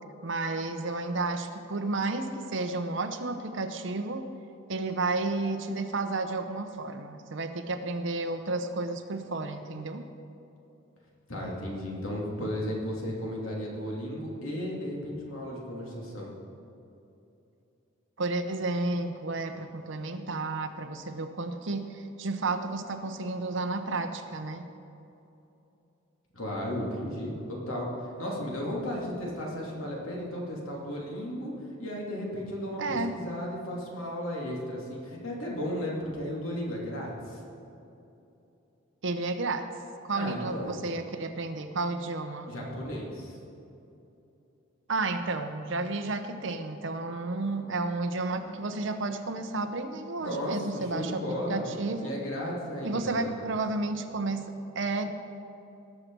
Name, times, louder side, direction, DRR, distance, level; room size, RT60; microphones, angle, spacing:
voice 1, 0.2-4.2 4.7-10.0 18.2-24.6 32.8-33.2 39.0-39.7 40.1-42.5 44.9-52.1 52.8-55.1, right 3 dB, 60° right, 7 dB, 0.8 m, -32 dB
voice 2, 11.3-16.3 26.3-27.9 28.2-31.5 31.8-37.4 40.1-40.8 42.5-43.4 50.2-51.6 52.0-53.4, equal, 75° left, -3 dB, 2.6 m, -34 dB
19.0 x 6.6 x 4.7 m, 2.8 s
head